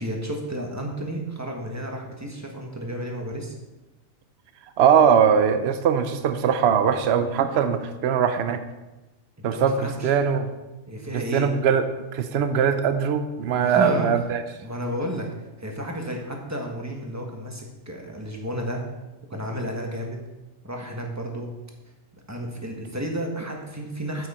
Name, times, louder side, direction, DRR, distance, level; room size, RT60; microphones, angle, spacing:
voice 1, 0.0-3.5 9.5-10.1 10.9-11.5 13.6-14.1 14.6-15.3 15.6-18.8 19.3-20.2 20.6-21.5 22.3-24.3, right 1 dB, 15° right, 1 dB, 1.3 m, -31 dB
voice 2, 4.8-8.6 9.4-10.5 11.1-11.8 12.1-14.4, right 7 dB, 60° right, 9 dB, 0.9 m, -21 dB
9.2 x 7.7 x 4.3 m, 1.1 s
omnidirectional pair, 1.3 m